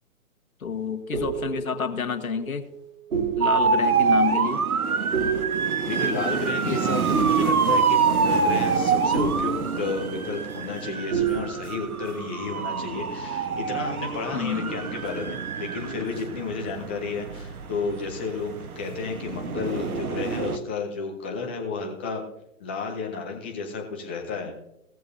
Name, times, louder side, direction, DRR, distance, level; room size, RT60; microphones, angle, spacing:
voice 1, 0.6-2.7 3.4-4.6 6.6-6.8 14.3-14.7, left 6 dB, 70° left, 8 dB, 1.5 m, -29 dB
sound 1, 0.7-10.8 11.1-12.0, right 6 dB, 60° right, 4.0 m, -31 dB
sound 2, 3.4-20.6, right 5 dB, 85° right, 1.3 m, -26 dB
voice 2, 5.8-22.2 22.6-24.5, left 4 dB, 10° left, 2 dB, 0.5 m, -32 dB
17.5 x 14.0 x 2.7 m, 0.80 s
hypercardioid pair, 140°, 43 cm